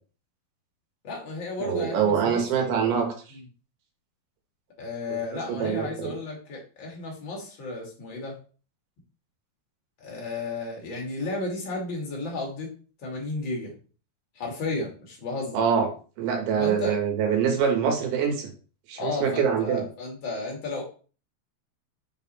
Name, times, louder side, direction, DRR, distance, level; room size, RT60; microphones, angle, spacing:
voice 1, 1.0-2.9 3.3-3.4 4.8-8.4 10.0-12.7 13.0-13.7 14.4-15.6 16.6-17.0 19.0-20.8, left 3 dB, 40° left, -1 dB, 2.0 m, -33 dB
voice 2, 1.6-3.4 5.1-5.2 5.5-6.2 15.5-15.9 16.2-18.5 18.9-19.8, right 7 dB, 75° right, 3 dB, 3.4 m, -25 dB
6.8 x 4.2 x 4.2 m, 0.38 s
omnidirectional pair, 4.5 m